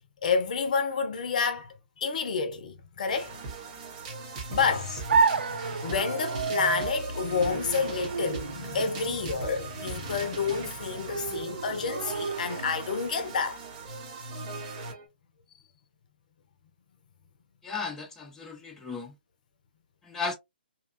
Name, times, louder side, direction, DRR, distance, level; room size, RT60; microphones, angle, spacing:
voice 1, 0.2-3.3 4.5-5.0 5.5-13.6, left 5 dB, 50° left, 0.7 m, -29 dB
sound 1, 3.1-15.1, right 4 dB, 35° right, 1.0 m, -40 dB
sound 2, 5.1-13.0, right 5 dB, 75° right, 0.3 m, -31 dB
voice 2, 17.6-19.1 20.1-20.3, left 4 dB, 5° left, 0.7 m, -35 dB
2.8 x 2.3 x 2.5 m
figure-of-eight pair, 135°, 6 cm